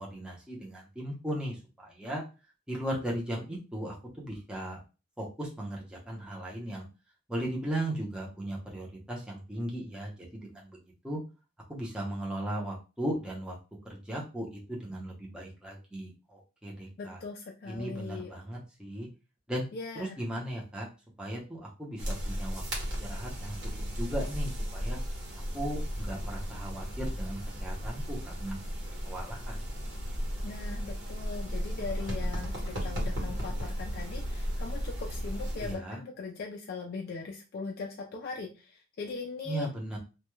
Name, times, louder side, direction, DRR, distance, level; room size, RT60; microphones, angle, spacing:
voice 1, 0.0-2.2 2.7-4.8 5.2-6.8 7.3-10.8 11.0-11.2 11.7-13.6 13.8-17.2 17.7-19.1 19.5-19.6 20.0-20.9 21.2-22.6 23.0-25.0 25.5-28.6 29.0-29.6 35.6-36.0 39.5-40.0, right 1 dB, 5° right, -4 dB, 0.6 m, -37 dB
voice 2, 17.0-18.3 19.7-20.2 30.4-39.7, left 4 dB, 50° left, 0 dB, 0.3 m, -40 dB
sound 1, 22.0-35.7, equal, 65° right, 1.0 m, -35 dB
2.2 x 2.1 x 3.0 m, 0.32 s
head